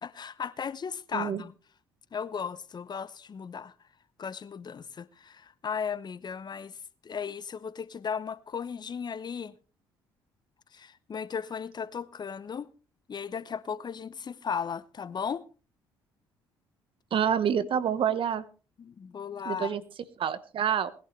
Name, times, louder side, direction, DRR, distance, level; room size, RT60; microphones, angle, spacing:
voice 1, 0.0-1.5 2.1-3.7 4.2-9.6 10.7-12.7 13.1-15.4 18.8-19.8, left 6 dB, 40° left, 0.9 m, -36 dB
voice 2, 17.1-18.4 19.4-19.8 20.2-20.9, right 8 dB, 55° right, 1.3 m, -27 dB
20.0 x 11.5 x 3.3 m
hypercardioid pair, 50°, 11 cm